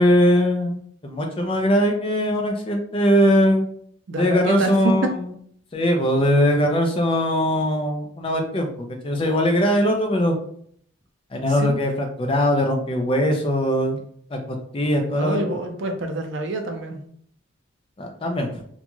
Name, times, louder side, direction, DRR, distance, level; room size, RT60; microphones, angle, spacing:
voice 1, 0.0-3.6 4.2-5.3 5.7-8.7 9.0-10.4 11.3-14.0 14.3-14.4 14.7-15.4 18.0-18.6, equal, 25° left, 2 dB, 0.4 m, -20 dB
voice 2, 4.1-5.2 11.5-11.8 15.1-17.0, right 2 dB, 65° right, 5 dB, 0.4 m, -26 dB
2.5 x 2.3 x 2.9 m, 0.63 s
head